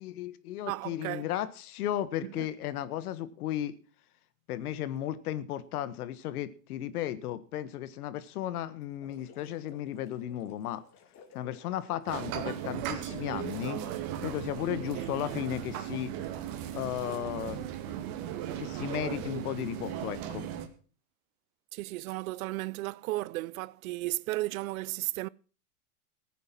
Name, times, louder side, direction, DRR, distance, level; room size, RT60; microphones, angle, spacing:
voice 1, 0.0-3.7 4.5-10.8 11.3-13.8 14.2-16.1 16.7-17.7 18.6-20.5, left 12 dB, 70° left, 1.6 m, -35 dB
voice 2, 0.7-1.3 2.2-2.5 14.9-15.1 21.7-25.3, right 19 dB, 65° right, 0.6 m, -34 dB
sound 1, 8.8-15.6, left 6 dB, 35° left, 2.9 m, -55 dB
sound 2, 12.1-20.7, right 11 dB, 45° right, 2.2 m, -37 dB
15.5 x 9.4 x 6.0 m
hypercardioid pair, 125°, 46 cm